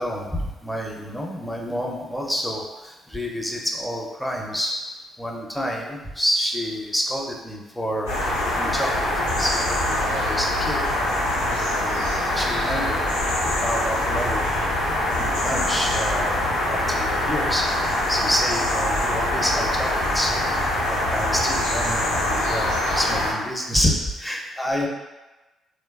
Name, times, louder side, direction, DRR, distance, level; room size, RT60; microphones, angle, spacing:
voice 1, 0.0-4.8 5.2-9.1 9.4-10.8 11.6-13.0 13.4-14.5 15.2-17.7 18.1-20.3 20.9-24.9, equal, 5° left, -1 dB, 0.5 m, -28 dB
sound 1, 8.1-23.3, left 1 dB, 85° left, 0.5 m, -24 dB
2.9 x 2.2 x 2.3 m, 1.1 s
hypercardioid pair, 45°, 0 cm